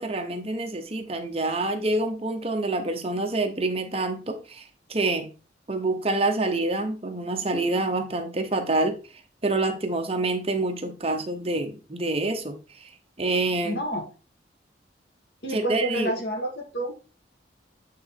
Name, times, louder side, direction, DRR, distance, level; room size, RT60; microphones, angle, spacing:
voice 1, 0.0-4.6 4.9-5.3 5.7-9.0 9.4-12.9 13.2-13.8 15.5-16.1, right 2 dB, 30° right, 5 dB, 0.9 m, -27 dB
voice 2, 13.6-14.1 15.4-16.9, right 1 dB, 60° left, 2 dB, 1.5 m, -29 dB
8.6 x 3.9 x 3.6 m, 0.34 s
head